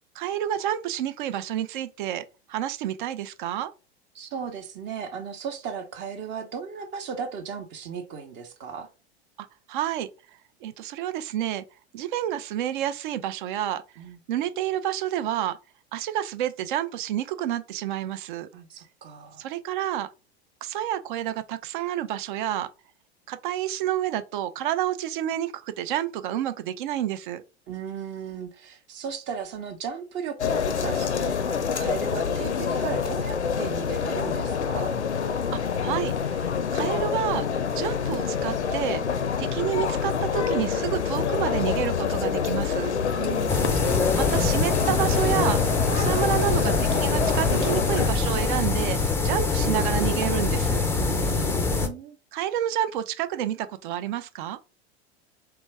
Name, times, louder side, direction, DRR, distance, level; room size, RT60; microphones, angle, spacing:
voice 1, 0.2-2.2 2.5-3.7 9.4-10.1 10.6-11.6 11.9-13.8 14.3-15.6 15.9-18.5 19.4-20.1 20.6-22.7 23.3-27.4 35.5-37.5 37.7-39.0 39.4-42.9 44.2-45.6 45.9-50.8 52.3-54.6, right 11 dB, 50° right, 0.5 m, -29 dB
voice 2, 4.1-8.9 14.0-14.2 18.5-19.4 27.7-31.4 31.7-35.0 43.1-43.7 50.8-52.2, right 7 dB, 35° right, 0.8 m, -36 dB
sound 1, 30.4-48.1, left 6 dB, 85° left, 0.5 m, -26 dB
sound 2, 43.5-51.9, left 4 dB, 5° left, 0.4 m, -25 dB
3.4 x 3.0 x 3.3 m
figure-of-eight pair, 85°, 33 cm